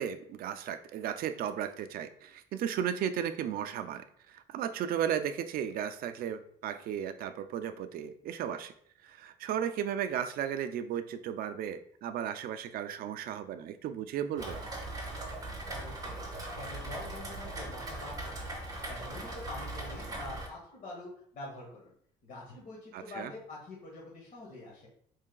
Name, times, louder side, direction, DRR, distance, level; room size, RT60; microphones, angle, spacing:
voice 1, 0.0-8.7 9.0-14.6 22.9-23.3, right 9 dB, 60° right, 10 dB, 0.4 m, -35 dB
Rain, 14.4-20.5, right 2 dB, 20° right, 1.0 m, -40 dB
voice 2, 15.7-16.3 16.6-18.4 18.9-21.9 22.2-24.9, left 2 dB, 50° left, -3 dB, 1.3 m, -45 dB
4.6 x 3.2 x 2.3 m, 0.63 s
cardioid pair, 110°, 17 cm